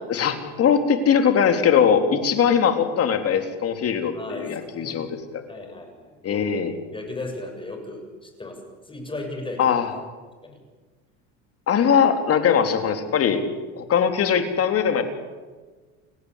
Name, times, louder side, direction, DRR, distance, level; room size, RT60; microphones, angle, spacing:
voice 1, 0.1-5.1 5.3-5.4 6.2-6.7 9.6-9.9 11.7-13.4 13.8-15.0, left 7 dB, 40° left, 6 dB, 3.8 m, -20 dB
voice 2, 4.1-5.1 5.5-6.5 6.9-8.6 8.9-9.8 10.4-10.6, left 2 dB, 15° left, 4 dB, 7.2 m, -36 dB
30.0 x 16.0 x 8.4 m, 1.4 s
supercardioid pair, 100°, 34 cm